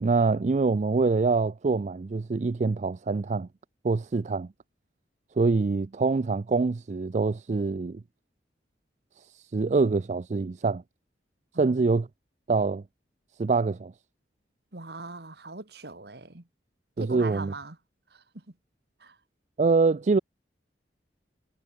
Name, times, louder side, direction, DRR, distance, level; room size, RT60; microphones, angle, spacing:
voice 1, 0.0-3.5 3.8-4.5 5.4-8.0 9.5-10.8 11.6-12.1 12.5-12.8 13.4-13.9 17.0-17.5 19.6-20.2, right 4 dB, 40° right, 0.4 m, -25 dB
voice 2, 11.5-11.9 14.7-16.5 17.0-17.8 18.1-18.4 19.0-19.2, right 3 dB, 65° right, 1.9 m, -41 dB
head